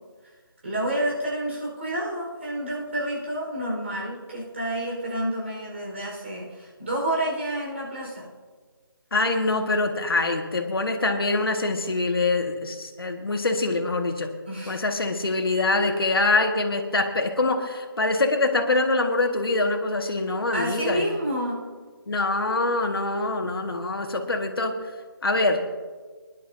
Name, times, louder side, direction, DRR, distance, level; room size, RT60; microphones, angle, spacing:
voice 1, 0.6-8.3 14.4-14.8 20.5-21.7, right 1 dB, 30° right, -3 dB, 4.6 m, -29 dB
voice 2, 9.1-14.3 14.7-21.1 22.1-24.8 25.2-25.6, left 2 dB, 75° left, 4 dB, 1.8 m, -24 dB
23.0 x 11.0 x 2.7 m, 1.4 s
figure-of-eight pair, 175°, 12 cm